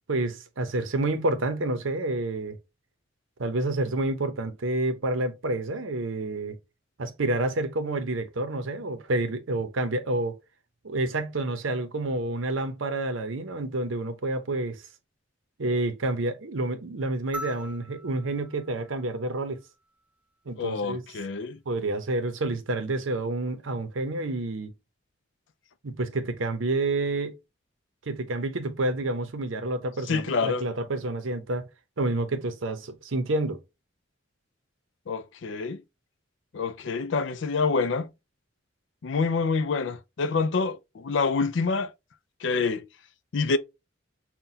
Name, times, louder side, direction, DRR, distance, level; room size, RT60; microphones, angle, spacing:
voice 1, 0.1-2.6 3.4-6.5 7.0-10.4 10.8-14.8 15.6-19.6 20.5-21.0 21.7-24.7 25.8-27.4 28.1-31.6 32.0-33.6, right 2 dB, 85° right, 0.7 m, -29 dB
sound 1, 17.3-19.9 21.5-21.6, equal, 5° right, 0.5 m, -42 dB
voice 2, 20.6-21.6 30.1-30.7 35.1-35.8 36.5-38.1 39.0-41.9 42.4-42.9 43.3-43.6, left 4 dB, 70° left, 0.4 m, -27 dB
5.7 x 2.2 x 2.7 m
head